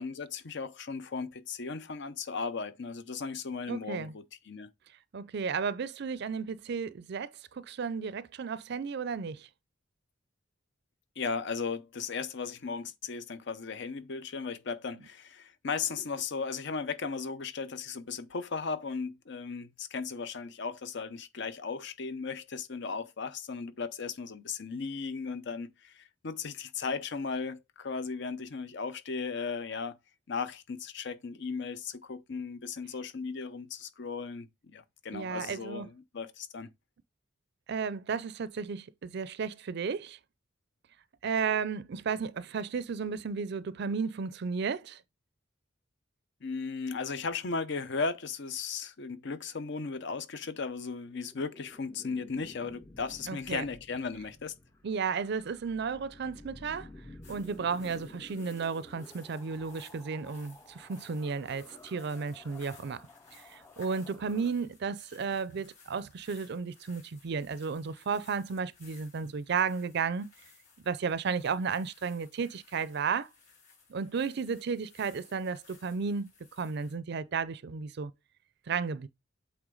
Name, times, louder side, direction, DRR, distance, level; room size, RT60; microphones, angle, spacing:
voice 1, 0.0-4.7 11.2-30.0 30.3-36.7 46.4-54.5, left 5 dB, 65° left, 0.7 m, -36 dB
voice 2, 3.7-4.1 5.1-9.5 35.1-35.9 37.7-40.2 41.2-45.0 53.3-53.6 54.8-56.9 57.3-63.0 63.3-70.3 70.8-73.3 73.9-76.3 76.6-78.1 78.7-79.1, right 5 dB, 60° right, 0.4 m, -33 dB
sound 1, 51.1-64.5, left 2 dB, 15° left, 0.5 m, -52 dB
sound 2, 57.2-77.0, left 5 dB, 40° left, 3.6 m, -59 dB
8.0 x 3.4 x 3.8 m
head